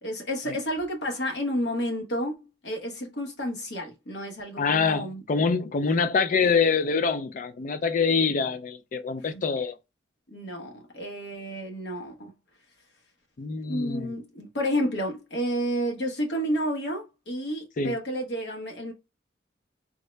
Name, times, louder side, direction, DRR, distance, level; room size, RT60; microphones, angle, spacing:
voice 1, 0.0-5.2 6.0-6.1 9.3-9.4 10.3-12.3 13.7-18.9, equal, 65° left, 1.0 m, -31 dB
voice 2, 4.6-9.8 13.4-14.1 17.8-18.0, left 5 dB, 45° left, 0.3 m, -25 dB
3.6 x 2.2 x 3.1 m
head